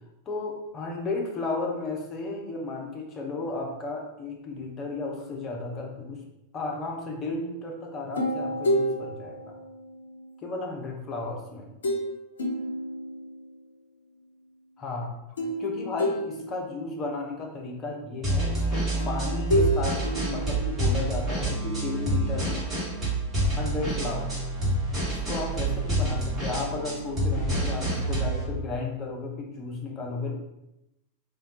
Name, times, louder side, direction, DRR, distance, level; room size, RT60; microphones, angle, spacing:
voice 1, 0.3-6.2 6.5-9.6 10.4-11.7 14.8-15.1 15.6-22.7 23.6-24.3 25.1-30.3, left 3 dB, 25° left, 0 dB, 0.7 m, -34 dB
sound 1, 8.2-10.5 11.8-12.1 12.4-13.7 15.4-17.1 19.0-21.3, equal, 65° left, 0.5 m, -30 dB
sound 2, 18.2-28.4, right 1 dB, 15° right, 1.3 m, -27 dB
3.6 x 2.2 x 2.7 m, 0.87 s
figure-of-eight pair, 90°, 0 cm